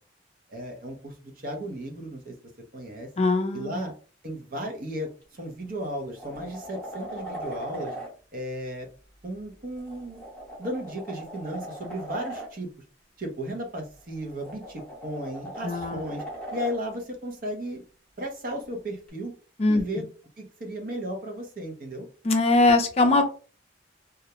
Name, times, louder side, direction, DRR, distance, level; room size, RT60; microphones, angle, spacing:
voice 1, 0.5-2.3 2.7-3.1 3.5-3.9 4.2-5.1 5.4-7.9 8.3-8.9 9.2-10.2 10.6-12.7 13.2-16.2 16.5-17.8 18.2-19.3 19.7-20.1 20.4-22.1, equal, 50° right, 2 dB, 0.6 m, -35 dB
voice 2, 3.2-3.8 15.6-16.0 19.6-19.8 22.2-23.2, left 2 dB, 35° left, 4 dB, 0.4 m, -21 dB
sound 1, 5.2-5.4 5.8-8.1 9.8-12.5 14.0-16.8 19.1-19.2, right 1 dB, 10° left, 0.9 m, -39 dB
2.3 x 2.1 x 2.8 m, 0.38 s
head